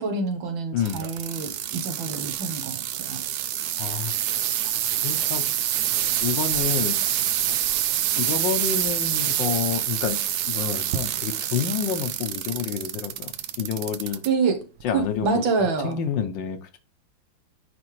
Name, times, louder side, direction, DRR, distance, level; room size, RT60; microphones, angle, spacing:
voice 1, 0.0-3.2 14.3-14.6 14.9-15.9, right 4 dB, 70° right, 1.8 m, -26 dB
voice 2, 0.7-1.0 3.8-4.1 5.0-5.5 6.2-7.0 7.5-7.6 8.2-10.2 10.5-14.2 14.8-16.8, left 8 dB, 70° left, 1.3 m, -29 dB
sound 1, 0.8-14.3 14.8-15.3 15.9-16.0, right 11 dB, 90° right, 0.8 m, -27 dB
9.5 x 3.4 x 3.1 m
omnidirectional pair, 2.3 m